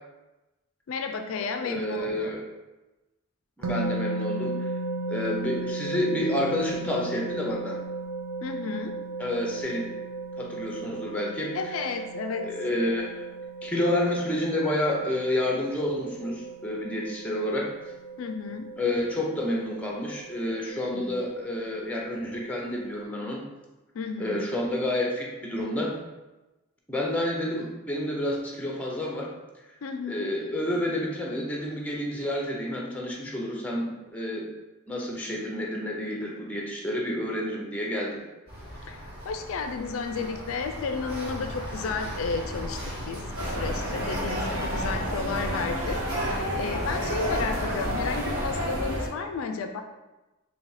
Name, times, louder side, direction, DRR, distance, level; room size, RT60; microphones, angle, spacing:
voice 1, 0.9-2.3 8.4-9.0 11.5-12.5 18.2-18.7 20.9-21.2 23.9-24.4 29.8-30.3 38.8-42.8 43.1-49.8, left 4 dB, 65° left, 6 dB, 0.3 m, -33 dB
voice 2, 1.6-2.4 3.6-4.6 5.1-7.8 9.2-9.9 10.4-11.5 12.4-13.2 13.6-17.7 18.8-23.4 24.2-26.0 26.9-29.3 30.1-34.5 34.9-38.2, left 1 dB, 5° left, -2 dB, 0.7 m, -29 dB
sound 1, 3.6-23.0, right 3 dB, 65° right, 0.7 m, -36 dB
sound 2, 38.5-48.6, equal, 45° right, 1.3 m, -37 dB
sound 3, 43.4-49.1, equal, 85° right, 1.6 m, -30 dB
4.0 x 2.8 x 4.7 m, 1.1 s
head